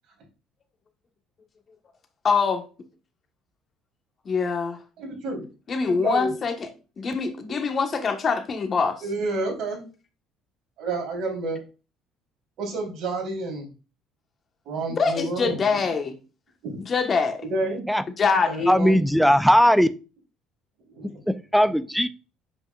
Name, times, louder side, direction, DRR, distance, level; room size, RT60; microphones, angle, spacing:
voice 1, 2.2-2.6 4.2-4.8 5.7-6.7 7.0-9.0 14.9-16.1 16.9-17.4 18.2-18.7, left 5 dB, 40° left, 1.3 m, -24 dB
voice 2, 5.0-5.4 5.8-6.3 7.5-7.6 9.0-9.8 10.8-11.6 12.6-13.7 14.7-15.8 17.5-17.9 18.5-19.0 20.9-21.1, right 2 dB, 70° right, 3.7 m, -30 dB
voice 3, 18.7-19.9 21.0-22.1, equal, ahead, 0.5 m, -19 dB
7.7 x 5.3 x 2.4 m
supercardioid pair, 70°, 0 cm